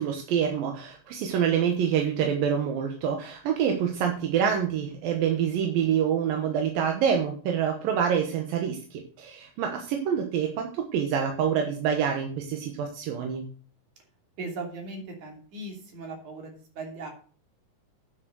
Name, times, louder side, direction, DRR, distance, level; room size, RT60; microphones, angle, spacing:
voice 1, 0.0-13.5, right 8 dB, 80° right, 3 dB, 3.0 m, -26 dB
voice 2, 14.4-17.1, right 3 dB, 60° right, 2 dB, 4.3 m, -38 dB
9.9 x 6.3 x 6.3 m, 0.41 s
omnidirectional pair, 4.0 m